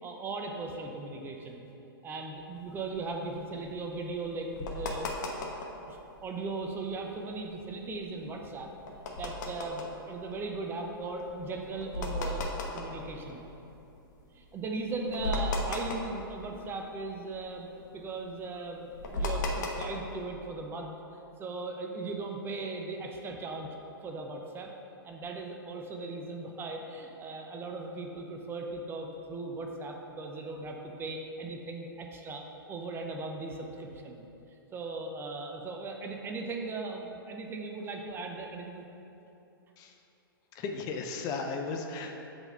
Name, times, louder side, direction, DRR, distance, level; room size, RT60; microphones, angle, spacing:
voice 1, 0.0-1.6 2.0-5.1 5.9-8.7 9.2-12.4 12.7-13.4 14.3-17.7 17.9-23.7 24.0-24.7 25.0-34.2 34.7-38.8, right 3 dB, 20° right, 2 dB, 0.6 m, -38 dB
sound 1, 2.6-5.9 6.3-6.4 6.5-6.9 7.3-14.0 14.4-14.5 14.8-16.9 17.2-20.2, left 2 dB, 50° left, 1.0 m, -36 dB
voice 2, 40.5-42.2, left 4 dB, 30° left, 3 dB, 0.6 m, -35 dB
7.7 x 4.3 x 5.5 m, 2.9 s
figure-of-eight pair, 110°, 12 cm